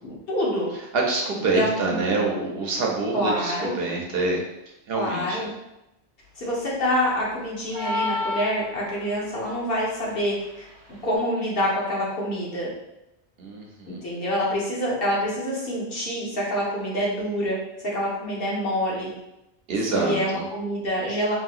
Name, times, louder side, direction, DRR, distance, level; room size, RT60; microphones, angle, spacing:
voice 1, 0.0-0.7 1.5-2.0 3.1-3.7 4.9-5.5 6.4-10.7 11.0-12.7 13.9-17.6 17.8-19.1 19.9-21.3, equal, 60° left, -5 dB, 1.1 m, -26 dB
voice 2, 0.9-4.4 4.9-5.5 13.4-14.0 19.7-20.4, right 3 dB, 65° right, 0 dB, 0.8 m, -26 dB
sound 1, 7.7-9.2, left 2 dB, 30° right, 0.7 m, -29 dB
3.2 x 2.7 x 2.4 m, 0.91 s
omnidirectional pair, 1.1 m